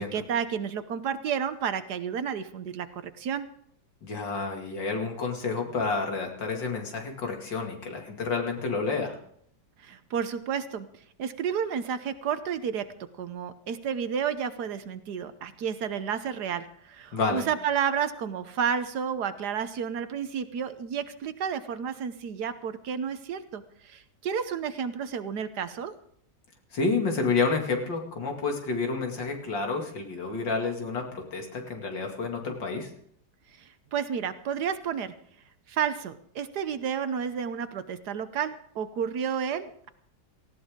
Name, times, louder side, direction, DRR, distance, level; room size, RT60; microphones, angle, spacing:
voice 1, 0.0-3.5 9.8-12.9 13.2-25.9 33.6-35.1 35.7-39.9, right 7 dB, 65° right, 11 dB, 1.4 m, -31 dB
voice 2, 4.0-9.2 17.1-17.5 26.7-32.9, left 4 dB, 85° left, 2 dB, 3.1 m, -29 dB
18.5 x 16.0 x 3.7 m, 0.66 s
omnidirectional pair, 1.9 m